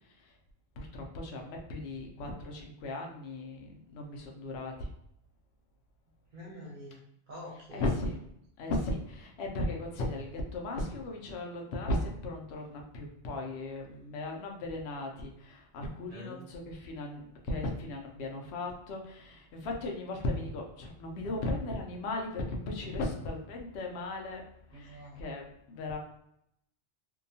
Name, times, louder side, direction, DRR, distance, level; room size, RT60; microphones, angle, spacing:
voice 1, 0.8-4.9 7.7-8.2 8.6-24.4 24.7-26.0, left 2 dB, 75° left, 1 dB, 0.8 m, -36 dB
voice 2, 6.3-7.0 7.3-7.8 16.1-16.5 24.7-25.2, equal, 50° right, -3 dB, 1.0 m, -46 dB
2.7 x 2.2 x 2.6 m, 0.75 s
omnidirectional pair, 1.1 m